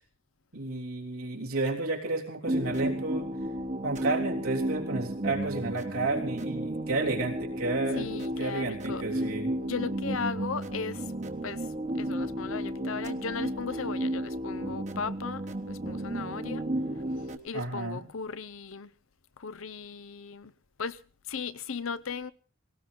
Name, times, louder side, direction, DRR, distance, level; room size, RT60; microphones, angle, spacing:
voice 1, 0.5-3.3 3.8-9.5 17.5-18.1, right 2 dB, 85° right, 3.4 m, -32 dB
sound 1, 2.5-17.4, right 1 dB, 35° right, 1.2 m, -33 dB
voice 2, 8.0-9.0 9.6-11.1 11.4-11.7 11.9-16.6 17.4-18.9 19.4-20.5 20.8-21.0 21.3-22.3, left 5 dB, 70° left, 0.7 m, -36 dB
18.5 x 18.5 x 3.8 m
head